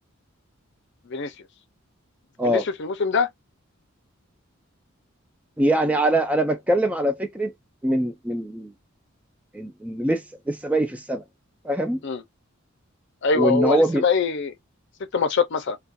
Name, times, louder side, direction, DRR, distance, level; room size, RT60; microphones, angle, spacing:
voice 1, 2.5-3.3 12.0-12.2 13.2-14.5 15.1-15.8, left 5 dB, 60° left, 0.5 m, -23 dB
voice 2, 5.6-7.5 7.8-8.7 9.5-11.2 11.6-12.0 13.3-14.0, right 1 dB, 5° right, 0.4 m, -23 dB
2.4 x 2.2 x 2.5 m
head